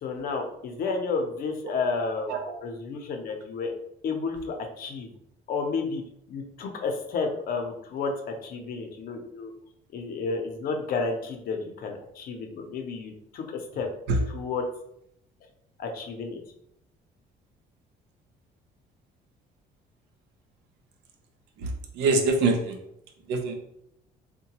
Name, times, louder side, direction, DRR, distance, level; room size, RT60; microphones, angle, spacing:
voice 1, 0.0-2.3 2.6-3.7 4.0-5.1 5.5-6.0 6.3-9.5 9.9-13.9 14.3-14.6 15.8-16.4, left 4 dB, 60° left, 4 dB, 0.7 m, -31 dB
voice 2, 21.6-22.8 23.3-23.5, right 3 dB, 85° right, 4 dB, 0.6 m, -25 dB
3.7 x 2.2 x 2.9 m, 0.77 s
cardioid pair, 110°, 17 cm